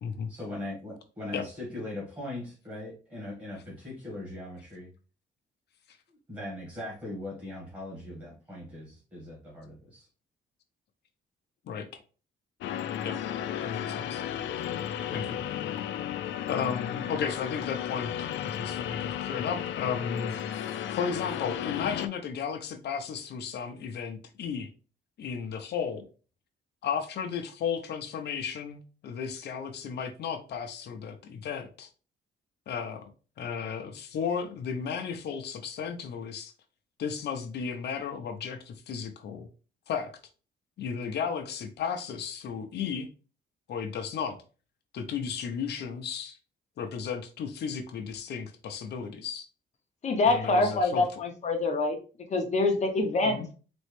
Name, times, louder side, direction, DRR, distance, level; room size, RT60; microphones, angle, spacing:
voice 1, 0.3-4.9 6.3-10.1, left 1 dB, 20° right, 1.8 m, -40 dB
voice 2, 11.7-12.0 13.0-13.2 13.6-14.2 15.1-15.4 16.5-18.1 18.4-20.4 20.9-24.7 25.2-26.1 26.8-31.9 32.7-33.1 33.4-36.5 37.0-39.5 39.9-40.1 40.8-43.1 43.7-44.4 44.9-46.4 46.8-49.5 50.3-51.1 53.2-53.5, left 6 dB, 65° left, 0.7 m, -34 dB
sound 1, 12.6-22.1, left 10 dB, 85° left, 0.4 m, -34 dB
voice 3, 50.0-52.0 52.3-53.4, left 2 dB, 40° left, 0.9 m, -25 dB
4.3 x 3.1 x 3.1 m
wide cardioid pair, 175°, 19 cm